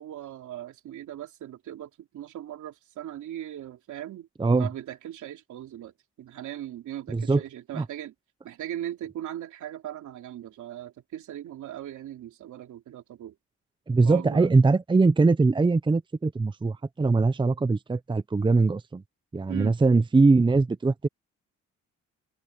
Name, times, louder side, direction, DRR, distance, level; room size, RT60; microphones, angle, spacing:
voice 1, 0.0-5.9 6.2-8.1 8.4-13.3 14.0-14.6 19.5-19.8, right 12 dB, 75° right, 3.3 m, -39 dB
voice 2, 7.1-7.4 7.7-7.8 13.9-19.0 19.3-21.1, right 3 dB, 15° right, 0.7 m, -22 dB
cardioid pair, 90°, 30 cm